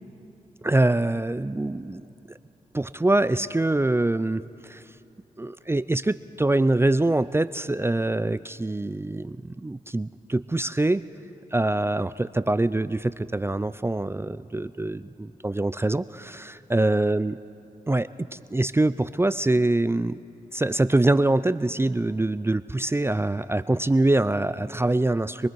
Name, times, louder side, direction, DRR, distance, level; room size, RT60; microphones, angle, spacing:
voice 1, 0.6-2.0 2.7-4.8 5.4-11.0 11.5-17.3 17.9-20.2 20.5-25.5, right 2 dB, 15° right, 14 dB, 0.5 m, -24 dB
27.5 x 20.0 x 4.7 m, 2.7 s
supercardioid pair, 40°, 15 cm